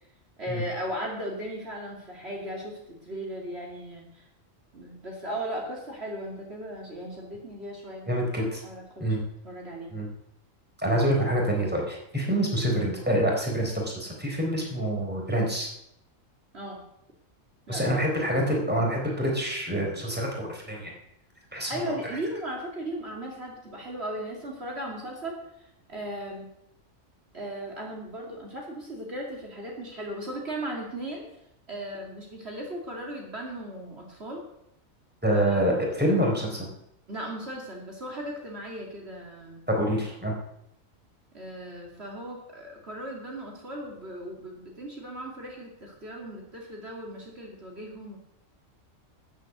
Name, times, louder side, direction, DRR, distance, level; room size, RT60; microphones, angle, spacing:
voice 1, 0.4-4.2 4.7-8.3 8.6-9.2 9.4-9.9 12.3-12.5 16.5-16.8 17.7-18.0 21.7-25.4 25.9-26.5 27.3-31.3 31.7-34.4 35.3-35.9 37.1-39.6 41.3-48.2, right 1 dB, 50° right, -1 dB, 3.0 m, -37 dB
voice 2, 8.1-8.6 9.0-9.2 9.9-10.1 10.8-15.7 17.7-20.9 21.5-21.7 35.2-36.7 39.7-40.3, right 1 dB, 5° right, -1 dB, 3.9 m, -26 dB
13.0 x 8.4 x 8.2 m, 0.77 s
omnidirectional pair, 1.4 m